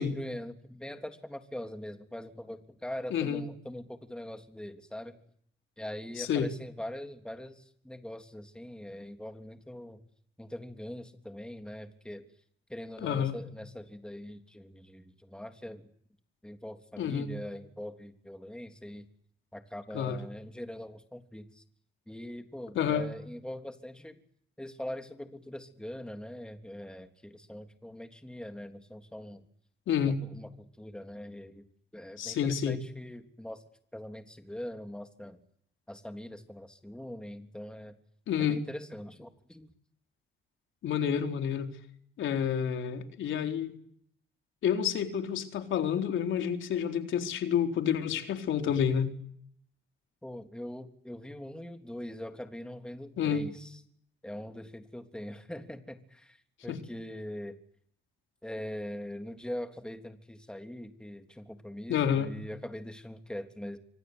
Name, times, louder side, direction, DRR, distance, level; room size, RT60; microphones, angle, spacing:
voice 1, 0.0-5.2 5.8-10.0 10.4-12.2 12.7-15.9 16.4-19.1 19.5-21.6 22.1-24.2 24.6-29.4 30.0-30.5 30.8-31.6 31.9-33.6 33.9-35.4 35.9-37.9 38.4-39.7 50.2-53.8 54.2-57.6 58.4-63.8, left 1 dB, 5° left, 3.4 m, -42 dB
voice 2, 3.1-3.4 6.2-6.5 13.0-13.4 17.0-17.3 19.9-20.2 22.8-23.1 29.9-30.2 32.2-32.8 38.3-38.7 40.8-41.7 42.2-43.8 44.6-49.1 53.2-53.5 56.7-56.8 61.9-62.3, left 8 dB, 75° left, 4.0 m, -29 dB
28.5 x 25.0 x 8.2 m
cardioid pair, 90°, 20 cm